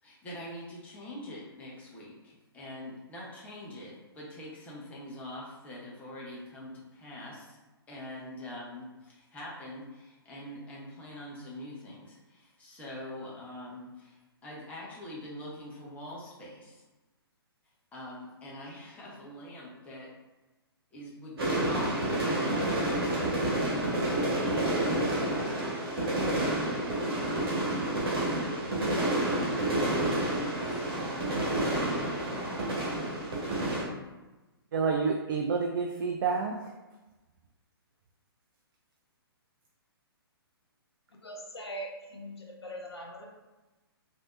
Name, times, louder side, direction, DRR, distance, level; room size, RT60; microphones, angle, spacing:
voice 1, 0.0-7.6 7.9-16.8 17.9-20.1 20.9-24.7 25.1-26.5 26.8-27.6 28.1-28.6, left 1 dB, 10° left, -5 dB, 0.8 m, -44 dB
sound 1, 21.4-33.8, right 1 dB, 70° right, 1.3 m, -29 dB
voice 2, 34.7-36.7, right 5 dB, 55° right, 2 dB, 0.4 m, -29 dB
voice 3, 41.1-43.3, equal, 80° left, 0 dB, 0.8 m, -41 dB
3.3 x 2.7 x 2.4 m, 1.1 s
figure-of-eight pair, 125°, 13 cm